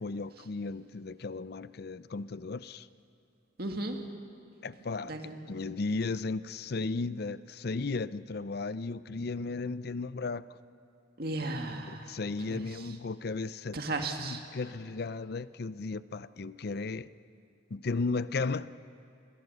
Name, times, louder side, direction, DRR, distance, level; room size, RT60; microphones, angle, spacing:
voice 1, 0.0-2.9 4.6-10.6 11.9-13.8 14.2-17.1 17.7-18.7, left 3 dB, 55° left, 0.6 m, -35 dB
voice 2, 3.6-4.0 5.0-5.4 11.2-12.2 12.5-12.6 13.7-14.4, right 2 dB, 55° right, 2.0 m, -35 dB
28.0 x 21.0 x 6.7 m
head